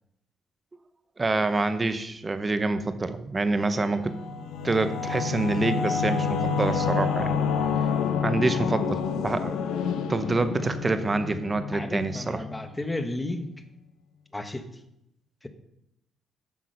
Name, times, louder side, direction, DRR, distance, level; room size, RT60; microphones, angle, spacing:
voice 1, 1.2-4.1 4.6-7.3 8.2-9.6 10.1-12.4, right 3 dB, 25° right, 11 dB, 0.9 m, -26 dB
Singing / Musical instrument, 3.9-13.1, left 6 dB, 85° left, 0.8 m, -29 dB
voice 2, 11.7-13.5 14.3-14.7, left 2 dB, 15° left, 8 dB, 1.0 m, -33 dB
8.7 x 6.1 x 5.2 m, 0.81 s
cardioid pair, 90°, 0 cm